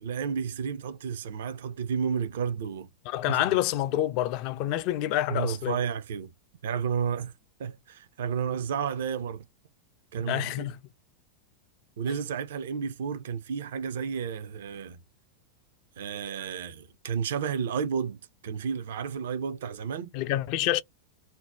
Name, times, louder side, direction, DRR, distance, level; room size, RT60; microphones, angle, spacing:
voice 1, 0.0-2.9 3.3-3.6 5.3-6.3 6.6-7.3 7.6-9.5 10.1-10.7 12.0-15.0 16.0-20.1, right 7 dB, 60° right, 0.4 m, -32 dB
voice 2, 3.1-5.8 10.2-10.8 20.1-20.8, left 13 dB, 45° left, 0.3 m, -27 dB
2.6 x 2.0 x 3.2 m
figure-of-eight pair, 90°, 0 cm